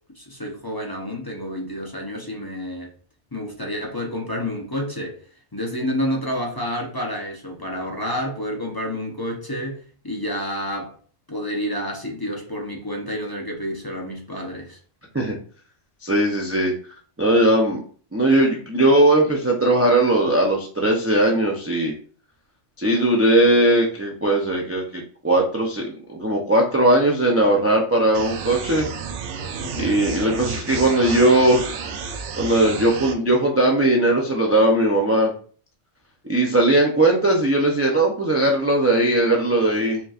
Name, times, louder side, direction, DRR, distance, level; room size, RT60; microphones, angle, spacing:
voice 1, 0.2-2.9 3.3-5.2 5.5-9.8 10.0-10.9 11.3-14.8 29.6-29.9, equal, 25° left, 0.6 m, -29 dB
voice 2, 16.0-16.7 17.2-17.8 18.1-21.9 22.8-28.9 29.8-31.7 32.3-35.3 36.3-40.0, right 1 dB, 20° right, 0.3 m, -19 dB
sound 1, 28.1-33.1, right 6 dB, 85° right, 0.9 m, -31 dB
5.1 x 2.9 x 2.4 m
omnidirectional pair, 1.2 m